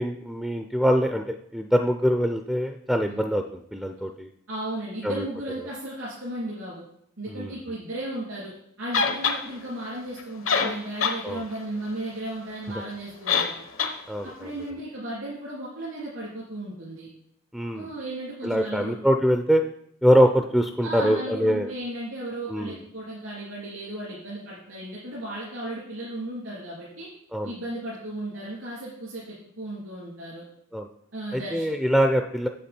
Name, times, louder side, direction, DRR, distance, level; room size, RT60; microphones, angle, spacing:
voice 1, 0.0-4.3 5.0-5.2 7.3-7.5 11.2-11.4 14.1-14.3 17.5-17.9 18.4-19.6 20.0-21.7 22.5-22.8 27.3-27.5 30.7-30.9 31.3-32.5, equal, ahead, 5 dB, 0.4 m, -23 dB
voice 2, 4.5-6.8 7.2-8.5 8.8-13.6 14.4-17.1 17.7-18.9 20.8-27.1 27.4-30.4 31.1-31.7, right 1 dB, 80° right, -7 dB, 3.2 m, -35 dB
sound 1, 8.9-9.4 10.2-10.3 10.5-11.2 11.6-11.7 13.3-13.5 13.8-13.9, left 5 dB, 75° left, 1.0 m, -23 dB
8.3 x 7.4 x 4.4 m, 0.72 s
head